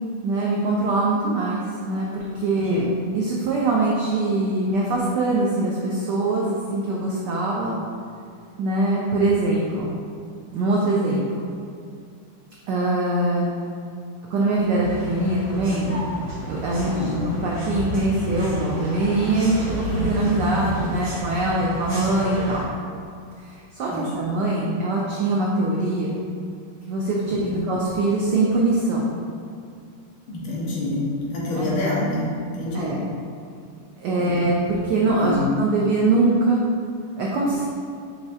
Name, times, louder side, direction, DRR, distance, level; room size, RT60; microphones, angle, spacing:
voice 1, 0.2-2.9 3.1-7.7 8.6-9.9 10.5-11.2 12.7-13.5 14.3-16.0 16.5-22.7 23.4-26.2 26.9-29.1 31.5-31.7 32.7-33.0 34.0-36.6 37.2-37.7, right 2 dB, 80° right, -4 dB, 0.9 m, -23 dB
sound 1, 14.8-22.6, equal, 50° right, 2.0 m, -31 dB
voice 2, 30.3-32.9 34.2-34.4 35.0-35.5, left 1 dB, 70° left, -6 dB, 1.7 m, -27 dB
5.8 x 3.1 x 2.7 m, 2.3 s
omnidirectional pair, 2.4 m